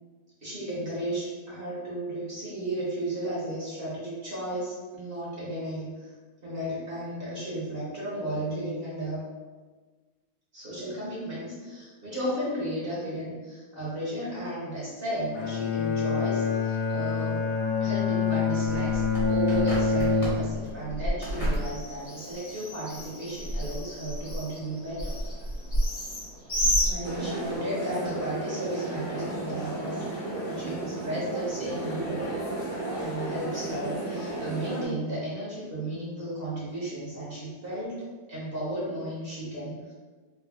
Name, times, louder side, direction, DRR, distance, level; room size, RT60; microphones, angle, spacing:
voice 1, 0.4-6.1 6.4-9.3 10.5-17.5 17.8-25.2 25.7-25.8 26.8-32.3 32.8-38.0 38.3-39.9, right 1 dB, 35° right, -8 dB, 1.2 m, -34 dB
Bowed string instrument, 15.3-20.8, left 5 dB, 80° left, 0.6 m, -26 dB
Bird, 18.7-27.6, equal, 25° left, 0.9 m, -31 dB
sound 1, 27.0-34.9, right 2 dB, 15° right, 1.0 m, -33 dB
3.6 x 3.2 x 2.3 m, 1.3 s
omnidirectional pair, 1.9 m